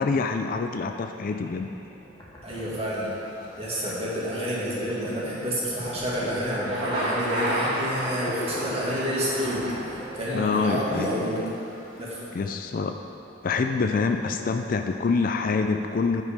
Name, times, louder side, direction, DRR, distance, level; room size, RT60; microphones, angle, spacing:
voice 1, 0.0-1.7 8.3-8.4 10.3-11.5 12.3-12.9 13.4-16.2, left 4 dB, 45° left, 6 dB, 0.3 m, -26 dB
sound 1, 1.3-11.9, left 1 dB, 20° left, 1.2 m, -42 dB
voice 2, 2.4-3.1 3.6-11.4 12.0-12.2, equal, 30° right, -7 dB, 1.9 m, -29 dB
sound 2, 2.5-12.4, left 1 dB, 80° left, 1.1 m, -45 dB
Thunder, 6.5-10.5, right 1 dB, 50° right, 2.1 m, -30 dB
9.5 x 5.5 x 5.1 m, 2.8 s
head